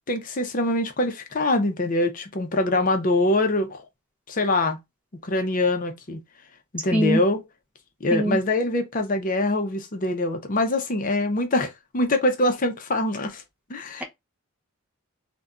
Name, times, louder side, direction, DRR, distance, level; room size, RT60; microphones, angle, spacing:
voice 1, 0.1-3.8 4.3-4.8 5.2-6.2 6.7-7.4 8.0-13.4 13.7-14.0, left 2 dB, 35° left, 0.5 m, -24 dB
voice 2, 6.9-7.2 8.1-8.4, right 1 dB, 5° right, 0.6 m, -22 dB
2.6 x 2.2 x 3.5 m
head